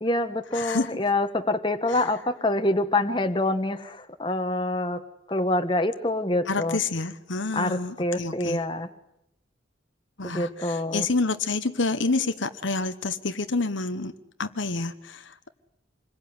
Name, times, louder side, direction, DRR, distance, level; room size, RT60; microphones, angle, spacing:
voice 1, 0.0-5.0 5.3-6.8 7.5-8.9 10.2-11.1, left 2 dB, 25° left, 7 dB, 1.5 m, -26 dB
voice 2, 0.5-0.9 6.5-8.6 10.2-14.1 14.4-15.5, left 3 dB, 60° left, 9 dB, 1.2 m, -28 dB
27.0 x 22.0 x 9.7 m, 0.81 s
head